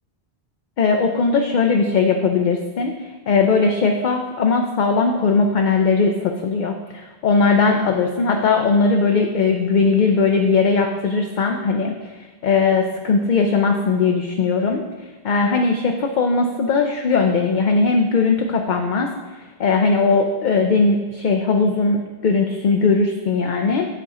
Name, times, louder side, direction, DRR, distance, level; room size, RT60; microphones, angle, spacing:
voice 1, 0.8-11.9 12.4-14.8 15.2-19.1 19.6-23.9, left 4 dB, 55° left, 3 dB, 0.6 m, -19 dB
8.9 x 3.7 x 4.2 m, 1.3 s
omnidirectional pair, 1.1 m